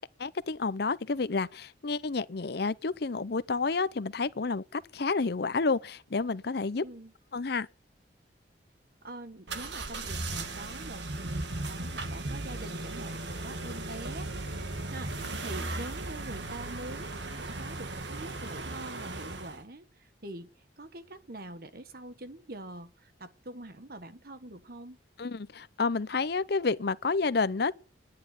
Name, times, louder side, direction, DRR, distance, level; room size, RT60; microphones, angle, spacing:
voice 1, 0.2-6.8 7.3-7.7 25.2-27.7, left 4 dB, 60° left, 0.7 m, -30 dB
voice 2, 6.8-7.1 9.0-25.0, right 1 dB, 55° right, 1.6 m, -44 dB
sound 1, 9.5-19.6, right 2 dB, 75° right, 1.9 m, -37 dB
10.5 x 9.5 x 9.8 m
head